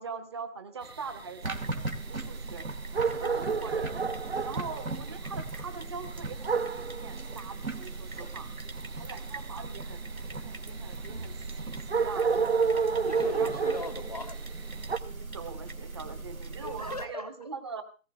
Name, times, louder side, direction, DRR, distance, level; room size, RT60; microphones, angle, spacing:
voice 1, 0.0-2.7 3.1-4.0 4.4-8.5 9.0-12.4 13.4-13.6 15.0-17.8, right 5 dB, 20° right, 1.0 m, -42 dB
sound 1, 0.8-15.0, right 5 dB, 45° right, 1.0 m, -32 dB
sound 2, 1.4-17.1, right 3 dB, 75° right, 2.6 m, -39 dB
voice 2, 12.7-14.4 16.6-17.5, left 3 dB, 30° left, 0.6 m, -39 dB
18.5 x 17.0 x 3.3 m
figure-of-eight pair, 155°, 42 cm